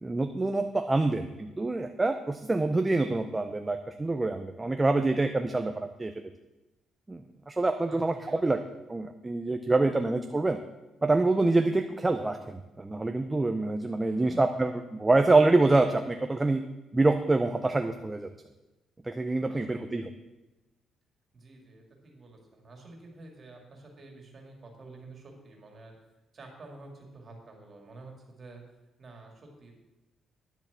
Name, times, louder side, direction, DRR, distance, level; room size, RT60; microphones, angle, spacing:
voice 1, 0.0-6.1 7.1-8.6 8.9-10.6 11.0-16.6 16.9-18.3 19.0-20.1, right 2 dB, 10° right, 6 dB, 0.5 m, -26 dB
voice 2, 7.9-8.4 14.1-14.5 19.5-19.9 21.3-25.9 26.3-28.6 29.0-29.7, right 2 dB, 25° right, 1 dB, 2.4 m, -49 dB
10.5 x 7.5 x 7.2 m, 1.0 s
cardioid pair, 175°, 0 cm